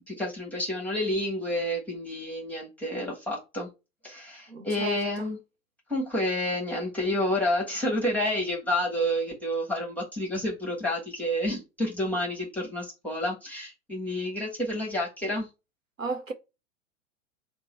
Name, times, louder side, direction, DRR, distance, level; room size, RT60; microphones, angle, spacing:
voice 1, 0.1-3.7 4.0-5.4 5.9-15.5, left 1 dB, 5° left, 1.0 m, -29 dB
voice 2, 4.5-5.3 16.0-16.3, right 4 dB, 90° right, 0.8 m, -35 dB
3.0 x 2.1 x 4.1 m
figure-of-eight pair, 100°, 38 cm